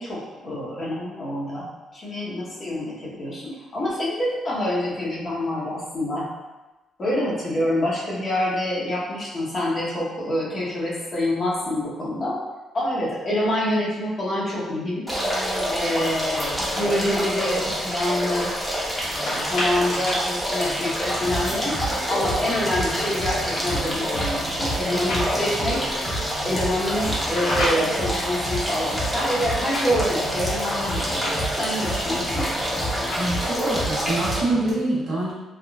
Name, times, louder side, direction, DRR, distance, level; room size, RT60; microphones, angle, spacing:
voice 1, 0.0-6.3 7.0-12.3 12.7-15.0 15.7-18.5 19.1-21.8 22.1-25.8 26.4-32.5, left 1 dB, 40° left, -6 dB, 1.0 m, -26 dB
sound 1, 15.1-34.4, equal, ahead, 0.9 m, -27 dB
sound 2, 18.9-22.3 22.9-25.8 26.9-28.1 28.9-29.9 30.9-33.7, left 1 dB, 80° left, 1.2 m, -33 dB
sound 3, 21.0-34.7, right 1 dB, 40° right, 1.3 m, -32 dB
voice 2, 33.2-35.3, right 2 dB, 70° right, -8 dB, 1.2 m, -25 dB
3.5 x 2.3 x 2.3 m, 1.1 s
cardioid pair, 90°, 0 cm